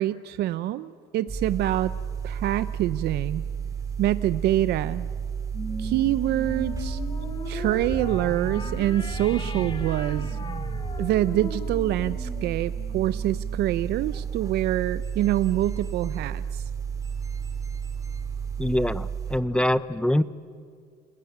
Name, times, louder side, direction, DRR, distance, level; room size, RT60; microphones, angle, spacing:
voice 1, 0.0-1.9 2.2-3.4 4.0-5.1 5.8-7.0 7.5-10.4 11.0-16.6, right 14 dB, 75° right, 14 dB, 0.6 m, -26 dB
sound 1, 1.3-19.4, right 7 dB, 20° right, 3.0 m, -32 dB
sound 2, 5.5-14.3, left 2 dB, 30° left, 2.7 m, -37 dB
voice 2, 18.6-20.2, left 1 dB, 5° left, 14 dB, 0.7 m, -24 dB
29.5 x 18.0 x 9.3 m, 2.1 s
cardioid pair, 110°, 17 cm